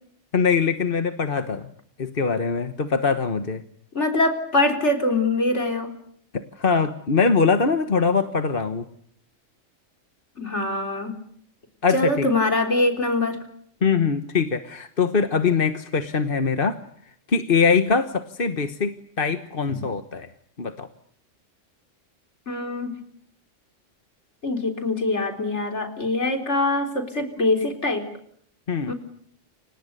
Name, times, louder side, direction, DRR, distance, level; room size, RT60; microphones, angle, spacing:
voice 1, 0.3-1.7 2.0-3.6 6.3-8.9 11.8-12.3 13.8-16.8 17.3-20.3 20.6-20.9 28.7-28.9, left 5 dB, 50° left, 9 dB, 1.5 m, -22 dB
voice 2, 3.9-5.9 10.4-11.2 11.9-13.4 19.7-19.8 22.5-22.9 24.4-28.0 28.8-28.9, left 2 dB, 65° left, 6 dB, 4.3 m, -23 dB
30.0 x 26.0 x 6.8 m, 0.66 s
omnidirectional pair, 1.3 m